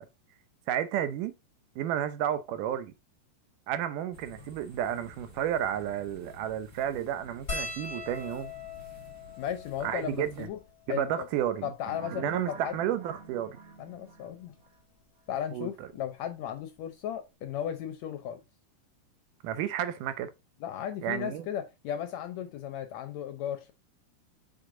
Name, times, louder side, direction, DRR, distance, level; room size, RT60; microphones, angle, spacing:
voice 1, 0.7-1.3 1.8-2.9 3.7-8.5 9.8-10.5 10.9-11.7 12.1-13.6 15.5-15.9 19.4-20.3 21.0-21.5, right 10 dB, 80° right, 2.2 m, -31 dB
sound 1, 4.1-10.5, left 2 dB, 30° right, 1.5 m, -52 dB
sound 2, 7.5-12.1 12.8-12.9 13.1-13.3 14.6-14.8 16.3-16.4 16.6-16.8, left 3 dB, 45° left, 0.8 m, -42 dB
voice 2, 9.4-10.6 10.9-11.3 11.6-12.8 13.8-14.5 15.3-18.4 20.6-23.7, left 10 dB, 75° left, 1.6 m, -35 dB
sound 3, 11.9-14.7, right 4 dB, 60° right, 2.2 m, -48 dB
6.5 x 5.0 x 3.7 m
omnidirectional pair, 3.9 m